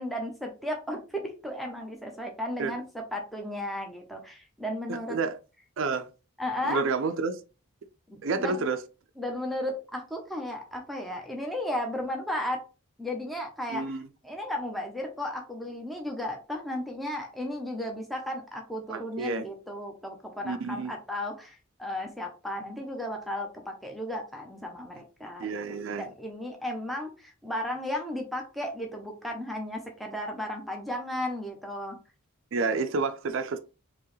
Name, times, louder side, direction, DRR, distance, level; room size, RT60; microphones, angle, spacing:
voice 1, 0.0-5.2 6.4-6.8 8.1-8.2 8.4-8.6 9.2-12.6 13.0-14.0 14.2-32.0, left 1 dB, ahead, 0.7 m, -34 dB
voice 2, 4.9-5.4 5.8-6.1 6.6-7.4 8.2-8.8 13.7-14.0 18.9-19.5 20.4-20.9 25.4-26.1 32.5-33.6, right 4 dB, 65° right, 0.4 m, -29 dB
4.5 x 3.0 x 3.1 m
head